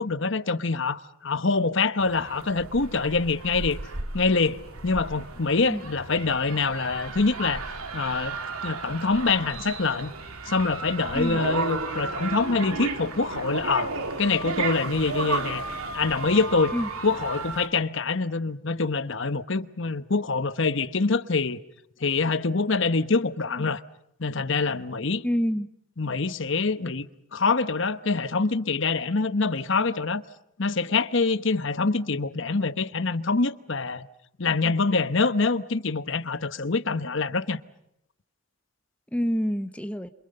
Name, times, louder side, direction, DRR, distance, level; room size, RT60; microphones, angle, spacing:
voice 1, 0.0-3.8 4.1-7.6 7.9-10.1 10.4-13.9 14.2-15.6 15.9-16.7 17.0-21.6 22.0-23.8 24.2-25.3 26.0-30.2 30.6-34.1 34.4-37.6, left 4 dB, 60° left, 1.0 m, -25 dB
sound 1, 2.0-17.7, right 3 dB, 90° right, 2.7 m, -34 dB
voice 2, 25.2-25.7 39.1-40.1, equal, 5° left, 1.0 m, -27 dB
28.0 x 27.5 x 6.7 m
head